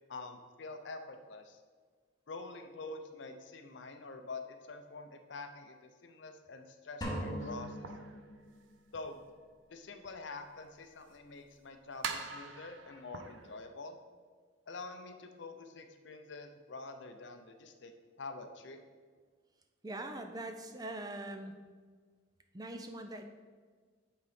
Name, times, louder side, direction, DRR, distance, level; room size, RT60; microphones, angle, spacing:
voice 1, 0.1-1.6 2.3-7.9 8.9-9.2 9.7-14.0 14.7-18.8, left 3 dB, 60° left, 7 dB, 0.6 m, -46 dB
sound 1, 7.0-8.8, equal, 20° left, 1.1 m, -40 dB
sound 2, 7.4-9.0 9.5-9.6 10.0-10.1 11.1-11.2 12.0-13.7, right 5 dB, 70° right, 0.7 m, -44 dB
voice 2, 19.8-21.5 22.5-23.2, right 1 dB, 20° right, 6 dB, 0.4 m, -42 dB
8.3 x 4.0 x 5.0 m, 1.5 s
head